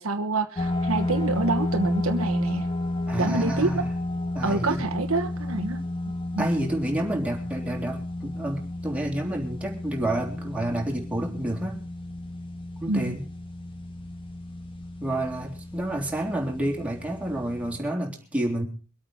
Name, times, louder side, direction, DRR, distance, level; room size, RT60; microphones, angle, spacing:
voice 1, 0.0-2.7 3.2-3.8 4.4-5.8 6.3-6.5 12.9-13.2, right 3 dB, 65° right, 8 dB, 1.2 m, -27 dB
sound 1, 0.6-17.8, left 1 dB, 25° left, 2.1 m, -32 dB
voice 2, 3.1-3.8 4.3-4.9 6.4-11.8 12.8-13.3 15.0-18.6, right 1 dB, 5° right, 0 dB, 3.5 m, -29 dB
24.0 x 8.6 x 5.5 m, 0.38 s
head